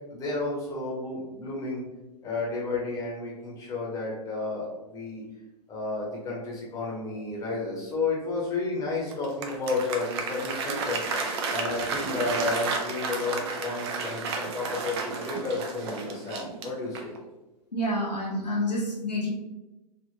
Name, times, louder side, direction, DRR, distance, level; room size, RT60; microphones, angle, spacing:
voice 1, 0.1-1.8 2.2-5.2 5.7-11.0 11.5-17.1, left 3 dB, 15° left, -4 dB, 0.9 m, -31 dB
Applause, 9.1-17.2, right 4 dB, 40° right, 0.5 m, -32 dB
voice 2, 17.7-19.3, left 1 dB, 80° left, -3 dB, 1.1 m, -28 dB
3.4 x 2.5 x 2.8 m, 1.0 s
figure-of-eight pair, 110°, 21 cm